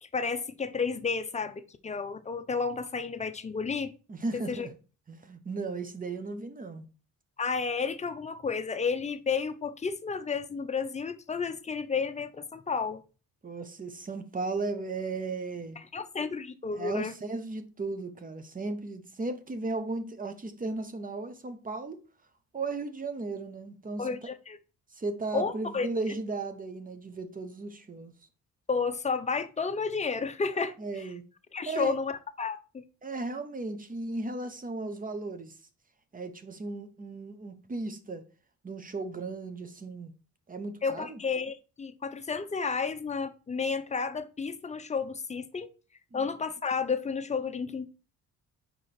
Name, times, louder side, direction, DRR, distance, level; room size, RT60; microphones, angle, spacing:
voice 1, 0.0-3.9 4.5-4.7 7.4-13.0 15.8-17.1 24.0-24.6 25.3-25.9 28.7-31.1 31.5-32.8 40.8-45.7 46.1-47.9, left 5 dB, 25° left, 0.7 m, -32 dB
voice 2, 4.1-4.7 5.1-6.9 13.4-15.8 16.7-22.0 22.5-24.3 25.0-28.1 30.8-31.2 31.7-31.9 33.0-35.5 36.1-38.2 38.6-40.1 40.5-41.2 46.1-46.3, right 3 dB, 30° right, 1.0 m, -36 dB
5.0 x 4.8 x 4.3 m
cardioid pair, 90°, 30 cm